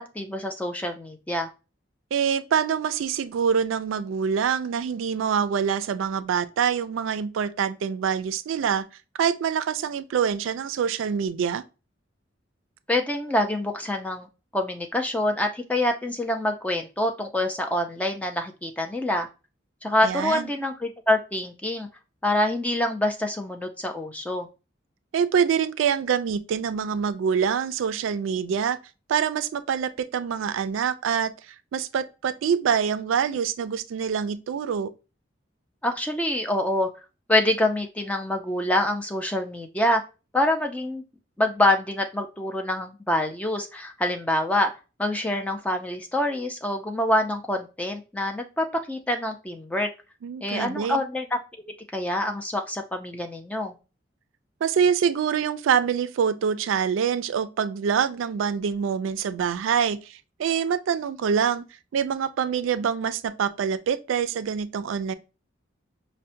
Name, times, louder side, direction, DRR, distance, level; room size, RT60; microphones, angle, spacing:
voice 1, 0.0-1.5 12.9-14.3 14.5-19.3 19.8-21.9 22.2-24.5 35.8-36.9 37.3-40.0 40.3-41.0 41.4-44.7 45.0-49.9 50.4-51.4 51.9-53.7, left 1 dB, 5° left, 0.4 m, -26 dB
voice 2, 2.1-8.9 9.2-11.6 20.0-20.5 25.1-28.8 29.1-34.9 50.2-51.0 54.6-61.6 61.9-65.1, right 7 dB, 85° right, 0.3 m, -25 dB
5.5 x 2.1 x 2.6 m
head